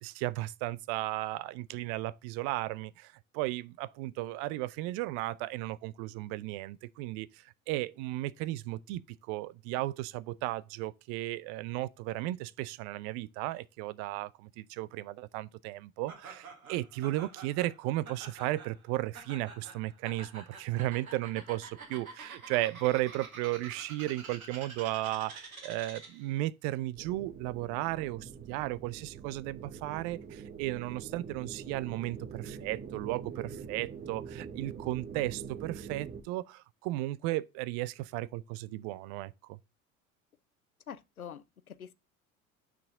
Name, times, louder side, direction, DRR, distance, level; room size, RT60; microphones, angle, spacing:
voice 1, 0.0-9.0 9.3-39.6, right 17 dB, 40° right, 0.4 m, -35 dB
Laughter, 16.1-26.3, right 4 dB, 85° right, 1.8 m, -48 dB
sound 1, 27.0-36.2, right 6 dB, 20° right, 1.0 m, -45 dB
voice 2, 40.9-41.9, left 8 dB, 90° left, 0.5 m, -45 dB
6.0 x 5.9 x 3.6 m
figure-of-eight pair, 70°, 42 cm